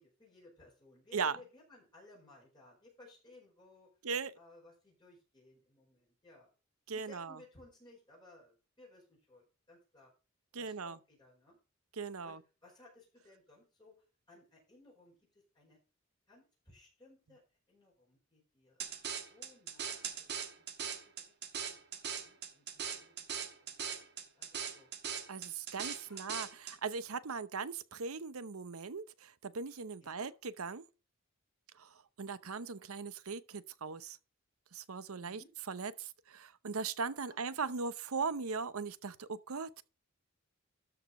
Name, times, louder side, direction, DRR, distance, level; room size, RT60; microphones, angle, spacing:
voice 1, 0.0-3.9 4.3-6.5 6.9-10.1 10.6-11.6 12.2-15.8 16.3-17.4 17.7-20.3 20.6-20.9 21.2-21.3 21.9-24.9 26.0-26.3 30.0-30.3 35.1-35.5 37.3-37.4, left 2 dB, 20° left, 4.9 m, -61 dB
voice 2, 6.9-7.3 10.5-11.0 12.0-12.4 25.3-30.3 30.6-30.9 31.8-31.9 32.2-34.2 34.7-35.4 35.7-39.8, right 5 dB, 85° right, 0.8 m, -39 dB
sound 1, 18.8-26.8, right 7 dB, 50° right, 1.6 m, -40 dB
13.0 x 5.0 x 5.2 m
head